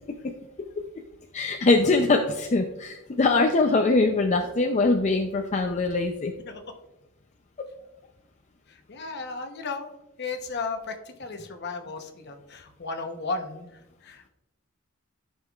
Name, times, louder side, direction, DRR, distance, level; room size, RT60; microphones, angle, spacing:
voice 1, 1.3-6.3, left 3 dB, 35° left, 3 dB, 0.5 m, -22 dB
voice 2, 8.9-9.9 10.2-10.9 11.2-13.7 14.0-14.3, left 4 dB, 50° left, 5 dB, 0.9 m, -34 dB
12.5 x 5.5 x 2.4 m, 0.95 s
head